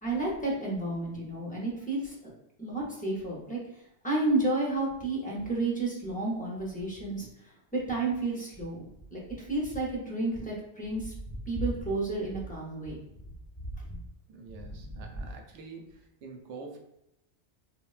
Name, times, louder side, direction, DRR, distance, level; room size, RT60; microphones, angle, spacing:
voice 1, 0.0-2.3 2.6-3.6 4.0-7.3 7.9-13.0 13.9-14.0 14.7-15.3, right 2 dB, 15° left, -4 dB, 0.4 m, -31 dB
voice 2, 14.3-15.9 16.2-16.8, right 4 dB, 85° right, 3 dB, 0.9 m, -45 dB
3.6 x 2.1 x 2.3 m, 0.82 s
omnidirectional pair, 1.2 m